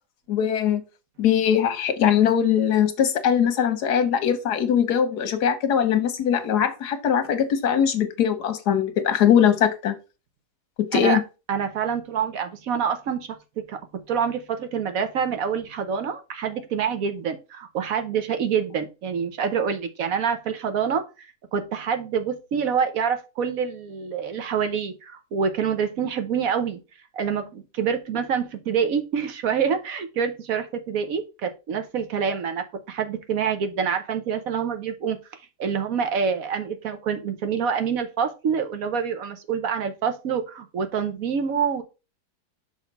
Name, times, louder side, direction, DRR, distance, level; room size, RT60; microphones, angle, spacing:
voice 1, 0.3-0.8 1.2-9.9 10.8-11.2, left 8 dB, 80° left, 1.5 m, -21 dB
voice 2, 11.5-13.8 14.1-26.8 27.1-41.8, right 7 dB, 65° right, 1.2 m, -26 dB
6.4 x 3.3 x 5.2 m
omnidirectional pair, 1.7 m